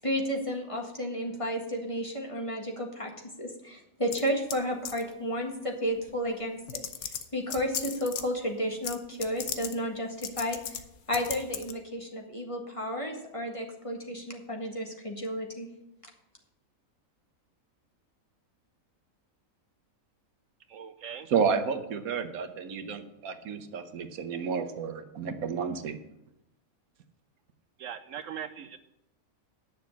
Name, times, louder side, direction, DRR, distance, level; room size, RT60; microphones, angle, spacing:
voice 1, 0.0-3.1 3.4-10.8 11.1-15.7, equal, 25° left, 1 dB, 1.7 m, -32 dB
sound 1, 4.1-4.6 4.8-5.1 6.1-6.2 6.7-8.2 8.8-9.0 9.2-9.7 10.2-10.8 11.1-11.7, left 8 dB, 85° left, 1.3 m, -36 dB
voice 2, 20.7-21.3 27.8-28.8, right 8 dB, 70° right, 10 dB, 1.0 m, -40 dB
voice 3, 21.3-26.0, right 6 dB, 85° right, 8 dB, 1.4 m, -31 dB
10.0 x 6.5 x 7.2 m, 0.87 s
omnidirectional pair, 1.5 m